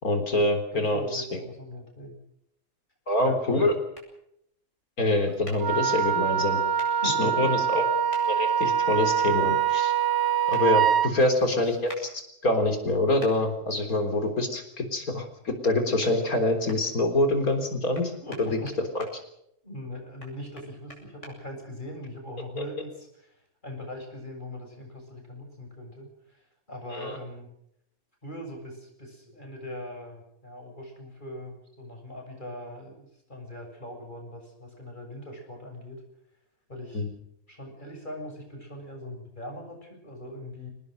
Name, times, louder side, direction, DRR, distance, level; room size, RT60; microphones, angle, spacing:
voice 1, 0.0-1.4 3.1-3.7 5.0-6.6 7.0-7.8 8.2-9.9 10.5-12.1 12.4-18.1 18.4-18.6 18.9-19.1 22.6-22.7 26.9-27.2 36.9-37.1, left 2 dB, 80° left, 6 dB, 4.3 m, -25 dB
voice 2, 0.7-2.2 3.2-3.7 6.9-7.5 18.2-18.5 19.6-23.3 23.6-26.4 26.7-27.5 28.2-36.0 36.7-37.0 37.5-40.7, equal, 30° left, 3 dB, 7.3 m, -40 dB
sound 1, 3.9-4.1 5.4-5.6 6.8-6.9 8.1-8.2 10.5-10.6 11.9-12.0 13.2-13.3 15.6-15.7 16.0-16.8 17.9-19.1 20.2-21.3, left 1 dB, 55° left, 6.9 m, -44 dB
Wind instrument woodwind instrument, 5.6-11.1, right 8 dB, 50° right, 1.6 m, -24 dB
25.5 x 19.0 x 6.5 m, 0.75 s
omnidirectional pair, 1.5 m